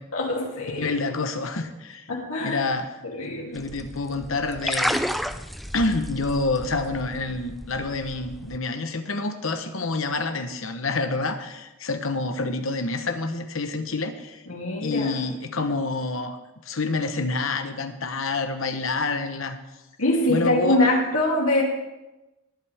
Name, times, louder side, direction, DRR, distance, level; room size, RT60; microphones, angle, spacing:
voice 1, 0.1-1.0 2.1-2.7 3.0-3.6 14.5-15.1 20.0-21.6, left 1 dB, 80° left, -3 dB, 3.0 m, -24 dB
voice 2, 0.7-2.1 2.4-2.9 3.5-5.0 5.7-14.4 14.8-16.4 16.7-19.6 20.3-20.8, left 3 dB, 65° left, 8 dB, 1.1 m, -27 dB
sound 1, 3.6-8.6, equal, ahead, 0.3 m, -31 dB
20.0 x 8.8 x 3.5 m, 1.0 s
head